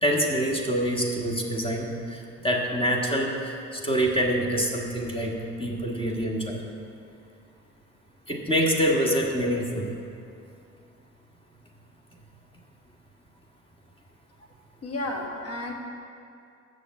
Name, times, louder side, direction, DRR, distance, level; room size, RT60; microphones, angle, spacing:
voice 1, 0.0-5.3 5.6-6.6 8.3-9.9, equal, 15° left, -1 dB, 1.4 m, -26 dB
voice 2, 14.8-15.7, left 1 dB, 50° left, 0 dB, 1.6 m, -32 dB
6.9 x 6.6 x 7.5 m, 2.5 s
cardioid pair, 90°, 30 cm